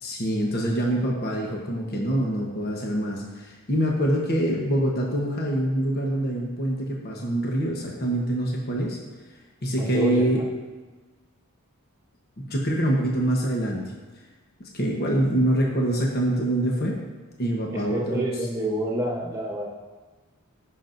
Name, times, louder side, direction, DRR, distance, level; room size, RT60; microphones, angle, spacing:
voice 1, 0.0-9.0 9.6-10.4 12.4-13.8 14.6-17.0 17.4-18.5, right 1 dB, 45° left, -1 dB, 1.1 m, -25 dB
voice 2, 9.8-10.4 17.7-19.7, right 1 dB, 15° right, -2 dB, 1.3 m, -28 dB
15.5 x 6.0 x 2.6 m, 1.3 s
head